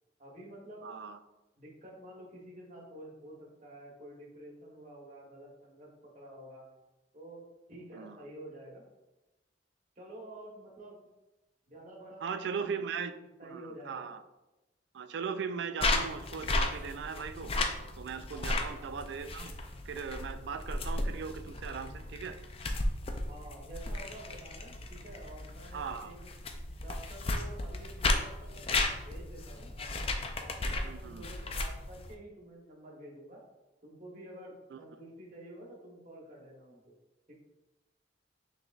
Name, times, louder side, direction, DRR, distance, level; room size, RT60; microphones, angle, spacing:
voice 1, 0.2-0.9 1.6-6.6 7.1-8.8 10.0-11.1 11.7-14.1 18.3-18.6 23.3-26.3 26.8-30.1 30.3-33.4 33.8-36.9 37.3-37.4, right 1 dB, 40° right, -3 dB, 1.0 m, -49 dB
voice 2, 0.8-1.2 7.9-8.3 12.2-13.1 13.4-14.2 14.9-17.6 18.0-19.5 19.8-22.4 25.7-26.1 30.8-31.3 34.7-34.8, right 6 dB, 65° right, 10 dB, 0.3 m, -39 dB
sound 1, 15.8-32.1, left 2 dB, 30° left, 0.4 m, -35 dB
6.1 x 3.3 x 2.4 m, 1.0 s
head